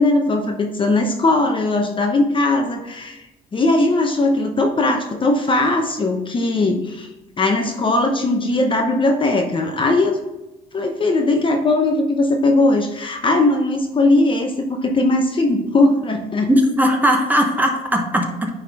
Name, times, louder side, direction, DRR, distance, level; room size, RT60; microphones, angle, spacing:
voice 1, 0.0-3.3 3.5-7.1 7.4-10.2 10.7-16.5, left 2 dB, 30° left, 4 dB, 0.8 m, -19 dB
voice 2, 16.5-18.5, equal, 10° right, 2 dB, 1.0 m, -18 dB
9.1 x 3.6 x 3.5 m, 1.0 s
cardioid pair, 110°, 17 cm